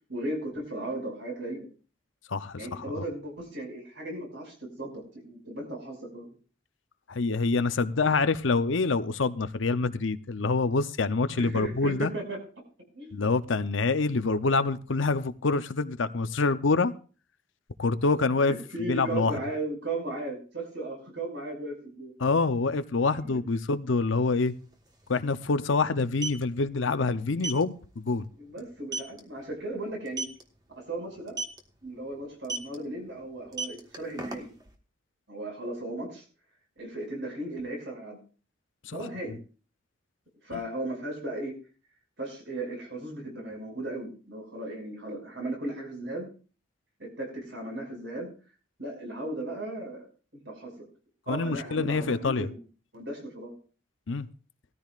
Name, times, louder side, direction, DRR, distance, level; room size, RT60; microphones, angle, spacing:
voice 1, 0.1-1.7 2.6-6.3 11.3-12.4 12.9-13.3 18.4-22.1 23.1-23.4 28.4-30.3 30.8-31.4 31.8-34.5 35.3-36.2 36.8-38.2 38.9-39.4 40.4-41.5 42.2-46.3 47.0-48.3 48.8-50.1 50.3-50.7 51.3-52.6 52.9-53.5, right 1 dB, 65° right, 1 dB, 6.0 m, -36 dB
voice 2, 2.3-2.8 7.1-12.1 13.1-16.9 17.8-18.5 18.9-19.3 22.2-24.5 25.1-28.2 51.3-52.5 54.1-54.3, left 3 dB, 75° left, 12 dB, 0.7 m, -26 dB
sound 1, 24.4-24.5 24.7-24.9 25.9-26.4 27.4-27.6 28.1-28.2 28.6-28.7 28.9-29.2 30.1-30.4 31.3-31.6 32.4-32.8 33.4-34.7, right 3 dB, 20° right, 1.3 m, -33 dB
18.5 x 14.0 x 2.5 m, 0.37 s
head